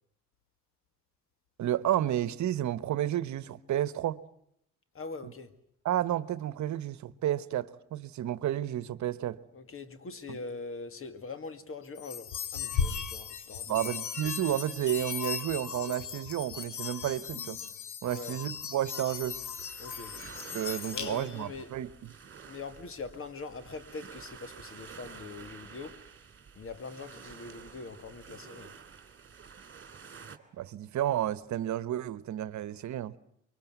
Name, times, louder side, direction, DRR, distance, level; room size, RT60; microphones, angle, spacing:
voice 1, 1.6-4.2 5.2-5.3 5.8-9.4 10.3-10.4 13.7-17.6 18.0-19.4 20.5-22.2 30.6-33.2, right 12 dB, 70° right, 1.1 m, -31 dB
voice 2, 4.9-5.5 9.5-13.8 18.1-18.4 19.8-20.2 20.9-21.7 22.5-26.0 26.6-28.7, left 4 dB, 45° left, 2.3 m, -42 dB
sound 1, 12.0-21.5, left 7 dB, 75° left, 2.7 m, -37 dB
sound 2, 19.2-30.4, right 6 dB, 40° right, 2.9 m, -50 dB
24.0 x 23.5 x 9.4 m
cardioid pair, 90°, 30 cm